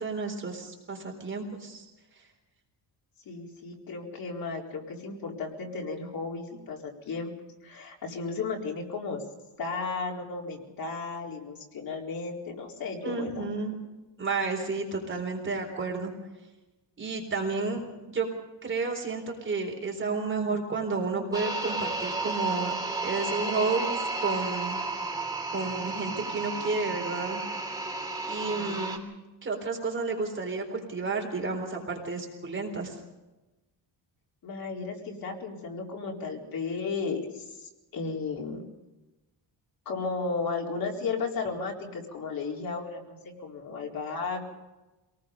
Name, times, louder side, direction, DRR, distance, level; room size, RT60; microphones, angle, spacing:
voice 1, 0.0-1.8 13.0-13.8 14.2-16.1 17.0-18.3 18.6-22.7 23.0-24.8 25.5-27.4 28.3-29.0 29.4-33.0, right 4 dB, 30° right, 1 dB, 4.0 m, -31 dB
voice 2, 3.3-7.3 7.6-9.2 9.6-13.4 28.5-28.9 34.4-38.7 39.9-44.5, left 4 dB, 55° left, 0 dB, 4.3 m, -34 dB
sound 1, 21.3-29.0, right 3 dB, 10° right, 2.8 m, -32 dB
27.0 x 19.5 x 5.3 m, 1.1 s
cardioid pair, 170°, 42 cm